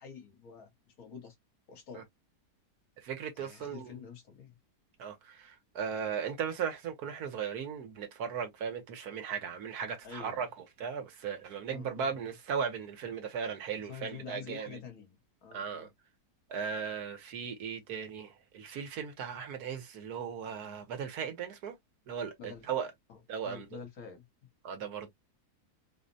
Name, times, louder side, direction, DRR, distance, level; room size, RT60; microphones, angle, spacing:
voice 1, 0.0-1.3 1.7-2.0 3.4-4.6 10.0-10.5 11.7-12.3 13.7-15.9 22.4-22.6 23.1-24.2, left 6 dB, 65° left, 1.7 m, -47 dB
voice 2, 3.0-4.0 5.0-10.5 10.8-14.8 15.5-15.9 16.5-21.8 22.1-22.9 23.3-23.8 24.6-25.1, right 7 dB, 75° right, 1.3 m, -37 dB
4.0 x 2.1 x 2.6 m
omnidirectional pair, 1.7 m